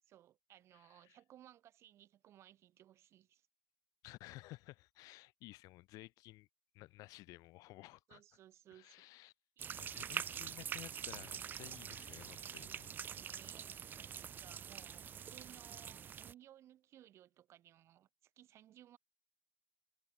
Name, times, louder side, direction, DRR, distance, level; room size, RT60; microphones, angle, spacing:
voice 1, 0.1-3.5 8.1-9.1 9.6-9.9 13.1-13.9 14.1-19.0, right 12 dB, 50° right, 6.9 m, -61 dB
voice 2, 4.0-6.5 6.7-8.2 8.7-9.3 9.8-13.0, left 19 dB, 80° left, 4.1 m, -55 dB
sound 1, 9.6-16.3, right 8 dB, 35° right, 1.9 m, -45 dB
cardioid pair, 170°, 6 cm